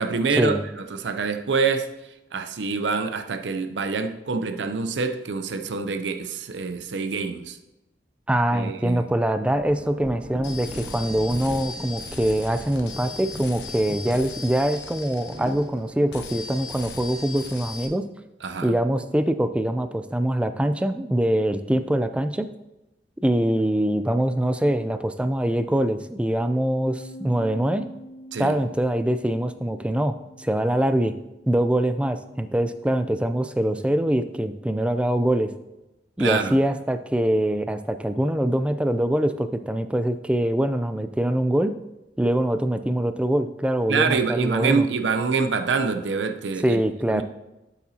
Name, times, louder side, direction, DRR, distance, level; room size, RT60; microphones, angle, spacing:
voice 1, 0.0-1.9 2.3-7.6 8.5-9.1 18.4-18.7 28.3-28.5 36.2-36.5 43.9-46.8 47.1-47.2, right 4 dB, 90° right, 0.6 m, -26 dB
voice 2, 8.3-18.0 18.6-22.5 23.2-27.8 28.4-31.1 31.5-35.5 36.2-41.7 42.2-44.9 46.6-47.2, right 1 dB, 5° right, 0.3 m, -23 dB
sound 1, 9.5-17.7, right 1 dB, 25° right, 0.8 m, -41 dB
sound 2, 10.4-15.8 16.1-17.9, left 4 dB, 80° left, 1.1 m, -38 dB
Bass guitar, 26.9-33.1, equal, 35° left, 1.3 m, -45 dB
8.4 x 8.1 x 2.8 m
head